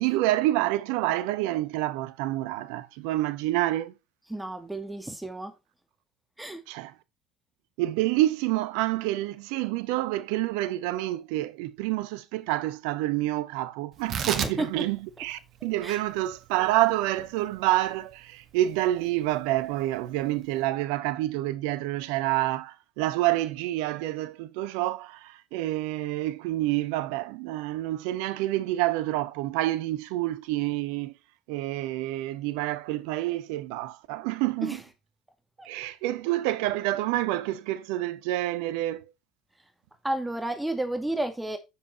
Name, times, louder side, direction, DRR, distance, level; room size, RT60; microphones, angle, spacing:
voice 1, 0.0-3.9 6.7-6.9 7.8-31.1 31.5-34.8 35.6-39.1, right 16 dB, 65° right, 1.0 m, -28 dB
voice 2, 4.3-5.5 6.4-6.6 14.4-14.8 15.8-16.0 34.6-34.8 35.6-35.7 40.0-41.6, right 1 dB, 10° right, 2.3 m, -31 dB
Tearing, 13.9-20.7, right 7 dB, 45° right, 1.6 m, -38 dB
9.3 x 7.7 x 4.3 m
figure-of-eight pair, 60°, 0 cm